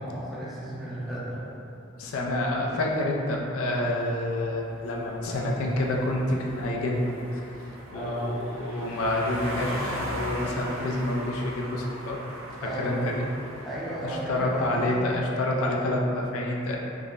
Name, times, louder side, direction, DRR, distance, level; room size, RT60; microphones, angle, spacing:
voice 1, 0.0-1.5 7.9-8.5 12.6-13.1 13.6-15.0, right 1 dB, ahead, -10 dB, 0.6 m, -33 dB
voice 2, 2.0-7.5 7.9-12.2 12.6-13.3 14.0-16.8, left 1 dB, 85° left, -2 dB, 0.4 m, -28 dB
sound 1, 4.4-14.7, equal, 80° right, 0.5 m, -39 dB
3.5 x 2.0 x 2.3 m, 2.7 s
head